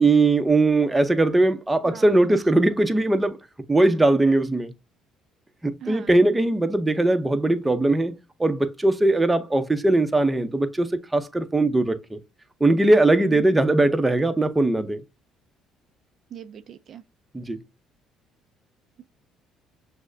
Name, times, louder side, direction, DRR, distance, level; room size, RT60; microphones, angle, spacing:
voice 1, 0.0-3.4 3.7-4.7 5.6-8.1 8.4-12.2 12.6-15.0 17.3-17.6, right 2 dB, 15° right, 0.7 m, -20 dB
voice 2, 1.8-2.4 5.8-6.2 16.3-17.0, right 8 dB, 55° right, 0.4 m, -40 dB
6.2 x 2.1 x 2.6 m
supercardioid pair, 70°, 0 cm